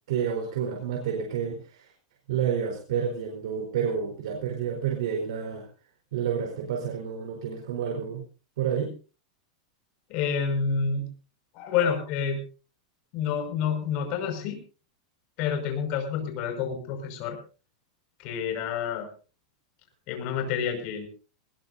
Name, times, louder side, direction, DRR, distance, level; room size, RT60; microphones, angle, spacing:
voice 1, 0.1-1.9 2.3-5.7 6.1-8.2 8.6-8.9, right 7 dB, 70° right, 2 dB, 4.3 m, -29 dB
voice 2, 10.1-11.1 11.5-12.4 13.1-14.6 15.4-17.4 18.2-19.1 20.1-21.1, left 6 dB, 40° left, 5 dB, 5.8 m, -28 dB
21.0 x 20.0 x 2.8 m, 0.36 s
supercardioid pair, 165°, 3 cm